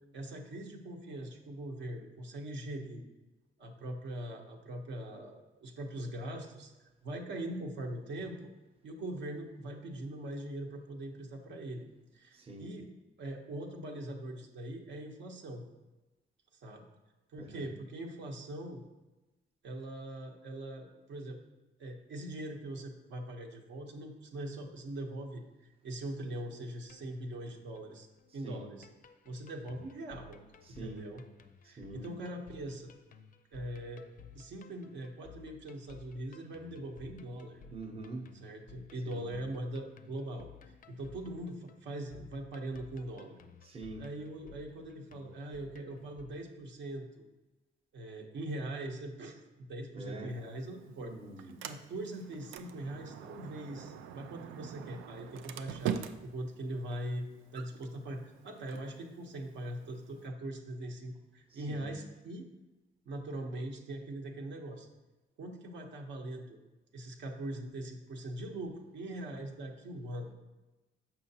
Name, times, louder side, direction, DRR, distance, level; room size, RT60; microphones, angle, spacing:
voice 1, 0.1-3.0 3.6-8.5 8.8-11.9 12.1-12.9 13.2-15.6 16.5-16.9 17.3-18.8 19.6-21.4 21.8-28.1 28.3-28.9 29.2-30.4 30.8-31.2 31.6-32.9 33.5-34.0 34.3-37.6 38.4-40.5 40.9-43.4 44.0-47.3 47.9-51.1 51.4-56.0 56.2-57.3 57.5-62.5 63.1-64.9 65.4-66.6 66.9-70.3, right 1 dB, 70° right, 1 dB, 0.9 m, -41 dB
voice 2, 12.3-12.8 17.4-17.7 28.4-28.6 30.6-31.1 31.6-32.1 37.7-38.3 39.0-39.3 43.6-44.1 49.9-50.3 51.0-51.5 61.5-61.9, right 2 dB, 30° right, 2 dB, 0.8 m, -45 dB
sound 1, 26.7-46.3, left 6 dB, 45° left, 0.4 m, -56 dB
Sliding door, 50.3-60.3, right 9 dB, 85° right, 0.4 m, -44 dB
6.1 x 5.7 x 2.8 m, 1.1 s
cardioid pair, 90°, 20 cm